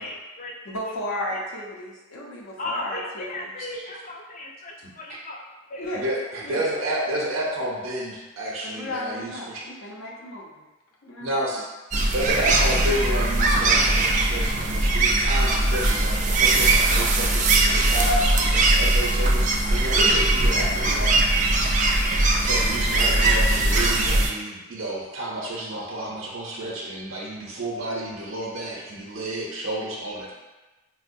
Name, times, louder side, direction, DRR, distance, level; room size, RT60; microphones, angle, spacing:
voice 1, 0.0-0.5 0.8-0.9 2.6-5.4 5.7-6.2, left 2 dB, 40° left, 0 dB, 0.4 m, -36 dB
voice 2, 0.6-3.5 5.8-6.1 6.4-6.7 8.6-10.6 11.0-11.6, left 1 dB, 80° left, -3 dB, 0.6 m, -34 dB
voice 3, 3.6-3.9 4.8-5.2 5.9-9.7 11.2-11.7 12.1-21.1 22.3-30.3, right 1 dB, 75° right, -3 dB, 0.6 m, -30 dB
sound 1, 11.9-24.3, right 2 dB, 40° right, 0.3 m, -20 dB
4.5 x 2.1 x 2.5 m, 1.1 s
head